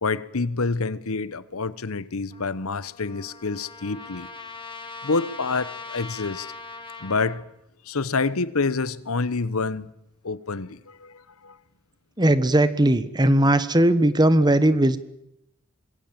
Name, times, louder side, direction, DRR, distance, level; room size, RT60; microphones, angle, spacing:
voice 1, 0.0-4.3 5.0-6.5 7.0-7.5 7.8-9.9 10.2-11.6, left 4 dB, 70° left, 1.0 m, -27 dB
Trumpet, 2.3-7.4, left 4 dB, 25° left, 1.9 m, -40 dB
voice 2, 12.2-15.0, right 1 dB, 20° right, 1.2 m, -18 dB
25.5 x 21.5 x 7.6 m
head